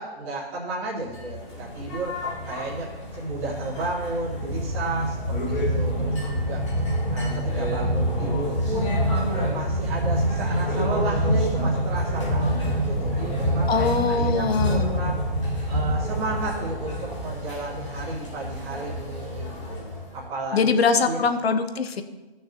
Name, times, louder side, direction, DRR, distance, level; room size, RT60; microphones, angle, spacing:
voice 1, 0.0-2.2 2.4-6.6 7.1-9.0 9.3-13.7 14.1-15.2 15.6-19.8 20.1-21.2, right 2 dB, 10° right, -9 dB, 1.4 m, -33 dB
sound 1, 1.1-20.3, equal, 30° left, 2.0 m, -26 dB
voice 2, 13.7-14.9 20.5-22.0, left 5 dB, 75° left, 9 dB, 1.0 m, -22 dB
16.5 x 6.5 x 2.9 m, 1.1 s
hypercardioid pair, 180°, 32 cm